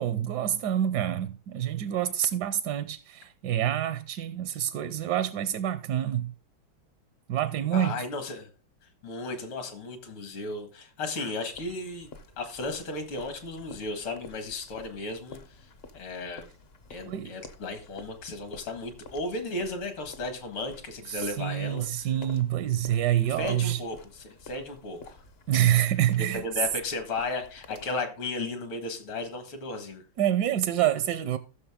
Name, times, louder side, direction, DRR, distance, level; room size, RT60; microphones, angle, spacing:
voice 1, 0.0-6.3 7.3-8.0 17.1-17.4 21.1-23.8 25.5-26.4 30.2-31.4, right 11 dB, 75° right, 0.9 m, -27 dB
voice 2, 7.7-8.5 9.0-12.1 12.4-16.5 16.9-21.9 23.3-25.2 26.2-30.0, left 2 dB, 75° left, 2.6 m, -35 dB
sound 1, 11.5-27.9, left 4 dB, 55° left, 0.7 m, -50 dB
14.5 x 6.4 x 3.6 m
omnidirectional pair, 2.4 m